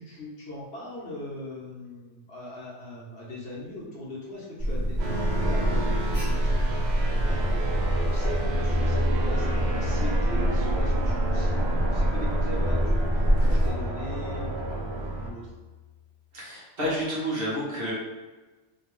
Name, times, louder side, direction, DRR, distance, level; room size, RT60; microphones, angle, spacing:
voice 1, 0.0-15.5, left 1 dB, 65° left, -6 dB, 1.3 m, -40 dB
Alarm, 4.6-13.7, right 1 dB, 35° left, 1.4 m, -25 dB
sound 1, 5.0-15.3, right 3 dB, 70° right, 0.8 m, -33 dB
sound 2, 7.2-15.9, left 2 dB, 25° right, 1.5 m, -34 dB
voice 2, 16.3-17.9, equal, 55° right, -6 dB, 1.2 m, -30 dB
3.0 x 2.9 x 3.1 m, 1.2 s
omnidirectional pair, 1.2 m